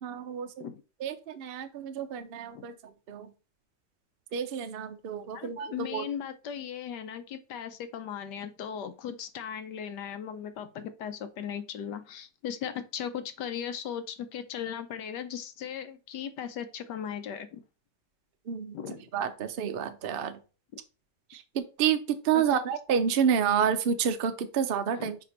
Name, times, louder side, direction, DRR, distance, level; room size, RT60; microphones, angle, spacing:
voice 1, 0.0-0.6 1.0-3.3 4.3-6.0 18.5-18.7 19.1-20.4 21.3-25.2, right 8 dB, 60° right, 8 dB, 0.5 m, -29 dB
voice 2, 5.3-17.6 18.7-19.0 22.3-22.6 25.0-25.1, left 8 dB, 70° left, 11 dB, 1.3 m, -37 dB
5.1 x 4.5 x 4.3 m, 0.33 s
omnidirectional pair, 2.0 m